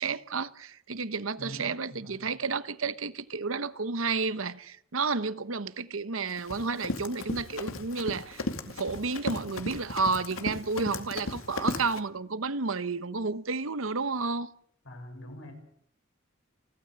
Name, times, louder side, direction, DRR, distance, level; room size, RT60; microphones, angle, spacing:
voice 1, 0.0-14.5, right 4 dB, 75° right, 1.1 m, -31 dB
voice 2, 1.4-2.4 14.8-15.5, left 1 dB, 65° left, 6.9 m, -44 dB
Run, 6.3-12.0, left 2 dB, 80° left, 2.3 m, -36 dB
30.0 x 13.0 x 8.0 m
head